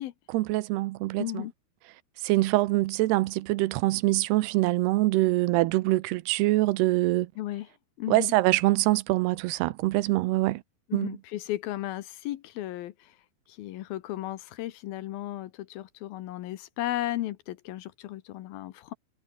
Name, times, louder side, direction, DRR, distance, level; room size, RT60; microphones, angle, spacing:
voice 1, 0.3-1.5 2.2-7.3 8.1-10.6 10.9-11.2, right 19 dB, 85° right, 2.8 m, -24 dB
voice 2, 1.2-1.5 7.4-7.7 8.0-8.3 10.9-13.1 13.5-18.9, left 14 dB, 75° left, 2.7 m, -35 dB
omnidirectional pair, 4.6 m